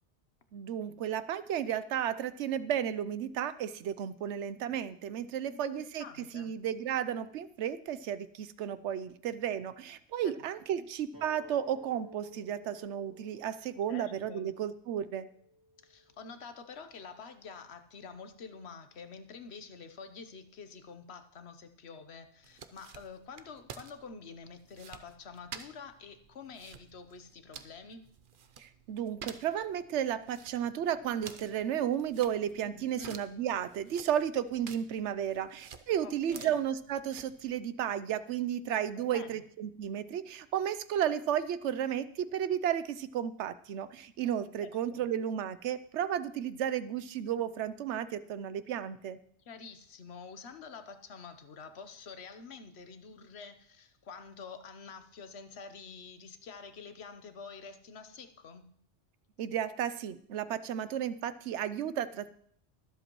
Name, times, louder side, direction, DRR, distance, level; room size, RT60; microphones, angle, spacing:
voice 1, 0.5-6.0 6.3-15.3 28.6-49.2 59.4-62.3, right 9 dB, 85° right, 14 dB, 0.9 m, -33 dB
voice 2, 5.5-6.6 10.2-10.5 10.7-10.9 13.9-14.5 15.8-28.1 32.7-33.2 36.0-36.6 38.9-39.4 44.5-45.1 49.4-58.7, left 5 dB, 70° left, 9 dB, 1.1 m, -48 dB
sound 1, 11.1-16.3, equal, 15° right, 2.0 m, -55 dB
sound 2, 22.4-37.6, right 7 dB, 55° right, 0.8 m, -52 dB
23.0 x 7.9 x 3.0 m, 0.62 s
omnidirectional pair, 1.2 m